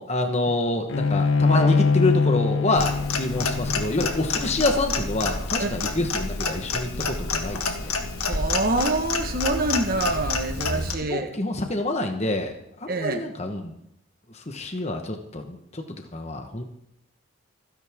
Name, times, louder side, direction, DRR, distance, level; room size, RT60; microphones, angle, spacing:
voice 1, 0.0-7.9 11.1-12.5 12.8-13.7 14.3-15.8 16.1-16.6, left 2 dB, 30° left, 4 dB, 1.2 m, -27 dB
Bowed string instrument, 0.9-6.2, left 4 dB, 65° left, 0.6 m, -24 dB
Clock, 2.7-10.9, left 3 dB, 85° left, 1.6 m, -28 dB
voice 2, 8.2-11.3 12.9-13.3, right 2 dB, 40° right, 6 dB, 1.4 m, -26 dB
28.5 x 11.0 x 3.6 m, 0.75 s
head